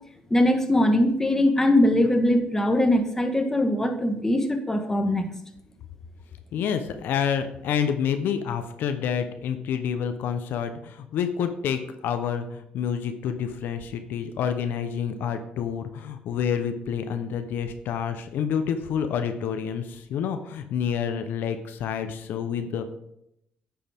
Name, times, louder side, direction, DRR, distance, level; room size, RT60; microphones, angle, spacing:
voice 1, 0.3-5.3, left 1 dB, 15° left, 5 dB, 1.3 m, -21 dB
voice 2, 6.5-22.9, left 8 dB, 75° left, 8 dB, 0.7 m, -28 dB
9.2 x 6.9 x 3.5 m, 0.78 s
cardioid pair, 90°, 3 cm